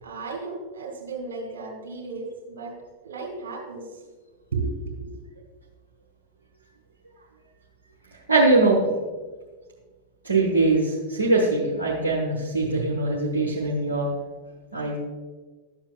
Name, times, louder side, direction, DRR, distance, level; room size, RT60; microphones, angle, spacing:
voice 1, 0.0-2.7 3.0-3.8 4.5-5.1, right 4 dB, 60° right, 1 dB, 2.3 m, -33 dB
voice 2, 8.3-8.9 10.2-14.1 14.7-15.0, right 2 dB, 80° right, -3 dB, 1.0 m, -22 dB
11.5 x 7.2 x 2.3 m, 1.4 s
figure-of-eight pair, 90°, 0 cm